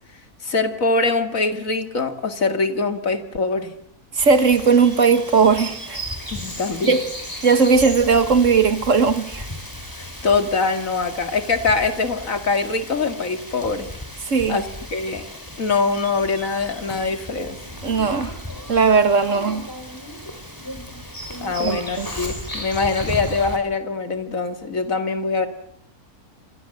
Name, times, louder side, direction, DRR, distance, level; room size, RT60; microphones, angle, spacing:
voice 1, 0.4-3.7 6.3-7.0 10.0-13.9 14.5-15.3 15.6-17.6 21.4-25.5, left 4 dB, 60° left, 2.6 m, -23 dB
voice 2, 4.1-6.0 6.8-7.0 7.4-9.5 14.3-14.6 17.8-18.3 18.7-19.7 21.6-22.1, right 5 dB, 55° right, 1.9 m, -17 dB
Bird vocalization bird call bird song, 4.2-23.6, equal, 10° left, 4.7 m, -35 dB
27.5 x 24.5 x 7.8 m
omnidirectional pair, 1.6 m